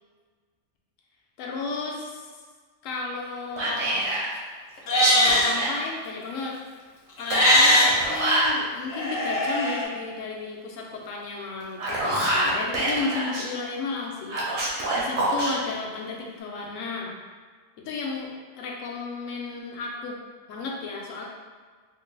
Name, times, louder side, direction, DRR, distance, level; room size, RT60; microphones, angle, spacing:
voice 1, 1.4-2.3 2.8-4.1 5.1-6.6 7.2-14.4 14.9-17.1 17.9-18.3 18.6-20.2 20.5-21.2, left 4 dB, 85° left, -1 dB, 1.0 m, -33 dB
Whispering, 3.6-4.3 4.9-5.7 7.3-8.5 11.6-13.4 14.3-15.5, right 1 dB, 65° right, 1.0 m, -25 dB
Livestock farm animals working animals, 4.8-5.5 7.2-7.9 8.9-9.8, left 1 dB, 60° left, 0.8 m, -21 dB
4.0 x 2.2 x 3.2 m, 1.6 s
omnidirectional pair, 1.3 m